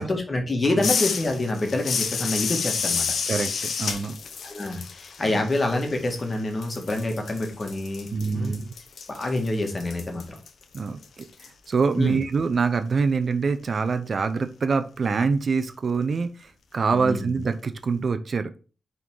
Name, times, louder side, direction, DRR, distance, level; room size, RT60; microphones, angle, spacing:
voice 1, 0.0-3.1 4.4-8.6 9.1-10.4 12.0-12.2 16.9-17.4, left 2 dB, 35° left, 3 dB, 1.7 m, -27 dB
sound 1, 0.8-6.3 6.6-11.5, left 6 dB, 80° left, 0.8 m, -30 dB
voice 2, 3.3-4.2 5.3-5.4 8.1-8.7 10.7-18.6, right 5 dB, 55° right, 9 dB, 0.6 m, -25 dB
5.5 x 3.8 x 4.7 m, 0.36 s
wide cardioid pair, 100°, 0 cm